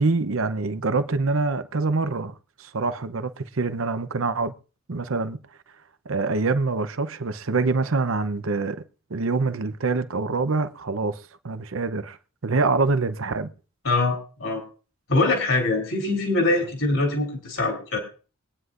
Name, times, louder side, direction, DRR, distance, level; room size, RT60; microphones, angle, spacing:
voice 1, 0.0-4.5 4.9-5.4 6.1-8.8 9.1-12.2 12.4-13.5, right 3 dB, 75° right, 0.8 m, -25 dB
voice 2, 13.8-14.6 15.1-18.0, left 2 dB, 65° left, 3.5 m, -23 dB
23.5 x 9.6 x 2.5 m
head